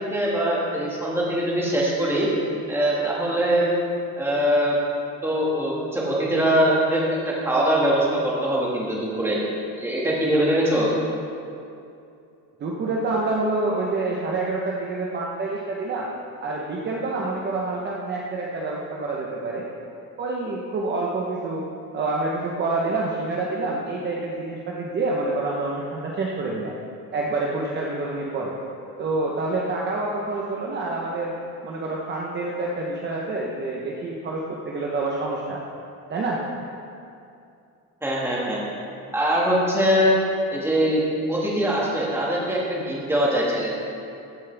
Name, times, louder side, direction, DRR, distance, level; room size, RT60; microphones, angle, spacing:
voice 1, 0.0-2.3 2.7-3.7 4.2-4.8 5.2-9.4 9.8-10.9 38.0-38.6 39.1-40.1 40.5-41.0 41.3-43.7, equal, 5° right, -5 dB, 1.9 m, -22 dB
voice 2, 12.6-16.1 16.4-19.7 20.2-21.7 21.9-26.8 27.1-28.6 29.0-31.3 31.6-35.6 36.1-36.4, right 2 dB, 30° right, -3 dB, 0.9 m, -27 dB
15.0 x 7.2 x 3.4 m, 2.6 s
cardioid pair, 160°, 35 cm